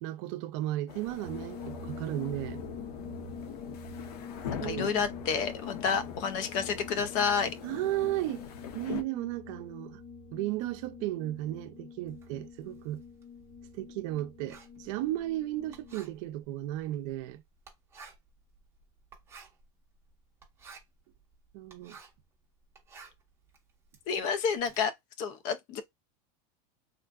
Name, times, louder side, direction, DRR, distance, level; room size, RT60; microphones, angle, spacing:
voice 1, 0.0-2.6 4.6-5.0 7.6-8.5 8.7-10.0 10.3-13.0 13.8-17.4 21.5-22.0, right 15 dB, 60° right, 0.5 m, -34 dB
sound 1, 0.9-9.0, left 9 dB, 90° left, 0.6 m, -42 dB
sound 2, 1.2-16.0, left 4 dB, 65° left, 1.6 m, -46 dB
voice 2, 4.6-7.5 24.1-24.9 25.2-25.8, left 6 dB, 40° left, 0.5 m, -30 dB
Writing, 12.1-22.3 22.6-24.8, right 4 dB, 15° right, 1.0 m, -54 dB
3.6 x 2.5 x 2.3 m
supercardioid pair, 155°, 19 cm